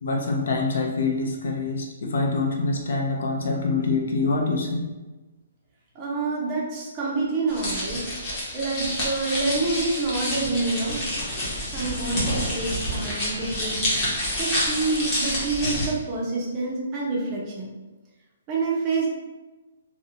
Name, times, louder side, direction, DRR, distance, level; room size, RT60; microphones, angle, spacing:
voice 1, 0.0-4.9, left 3 dB, 65° left, 0 dB, 0.5 m, -25 dB
voice 2, 6.0-8.0 8.5-11.0 11.7-13.8 14.4-17.7 18.5-19.1, right 3 dB, 20° right, -4 dB, 0.5 m, -27 dB
sound 1, 7.5-15.9, left 1 dB, 20° left, 0.7 m, -28 dB
2.5 x 2.0 x 2.7 m, 1.1 s
hypercardioid pair, 170°, 0 cm